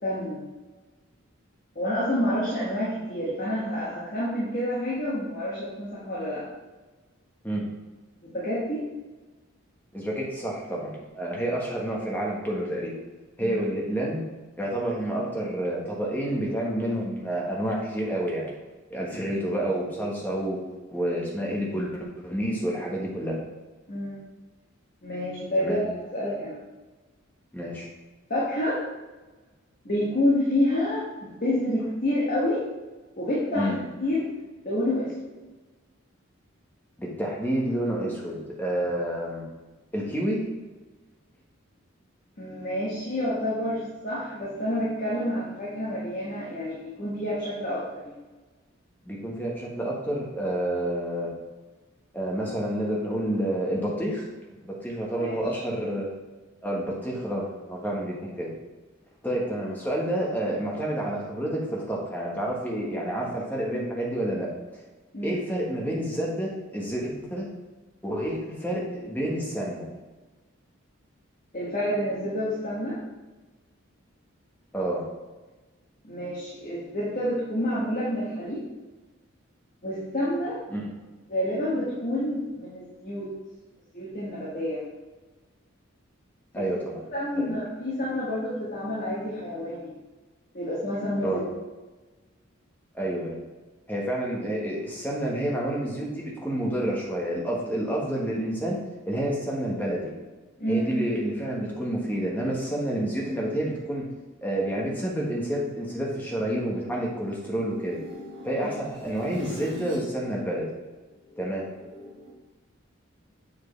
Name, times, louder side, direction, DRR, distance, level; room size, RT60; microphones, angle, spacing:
voice 1, 0.0-0.4 1.7-6.4 8.2-8.8 13.4-13.6 23.9-24.2 25.0-26.6 28.3-28.8 29.8-32.6 33.2-34.2 34.6-35.3 42.4-48.2 55.0-55.3 65.1-65.4 71.5-73.0 76.0-78.6 79.8-80.6 81.3-83.3 83.9-84.8 86.5-86.6 87.1-89.9 90.5-91.4 100.6-100.9 108.6-108.7, left 1 dB, 45° left, -7 dB, 1.4 m, -28 dB
voice 2, 9.9-12.9 13.4-14.2 14.6-18.5 18.9-20.6 20.9-23.4 25.6-25.8 27.5-27.9 33.5-33.8 37.0-39.5 39.9-40.5 49.0-51.3 52.1-54.3 54.5-56.1 56.6-58.5 59.2-64.8 65.2-67.5 68.0-69.9 74.7-75.0 80.7-80.9 86.5-87.0 87.4-87.5 91.2-91.4 92.9-93.4 93.9-98.8 99.1-100.1 100.7-104.0 104.4-108.0 108.4-110.7 111.4-111.7, right 1 dB, 10° left, -3 dB, 1.2 m, -29 dB
sound 1, 105.3-110.1 110.5-112.3, equal, 60° right, 1.3 m, -45 dB
7.3 x 4.7 x 3.2 m, 1.2 s
head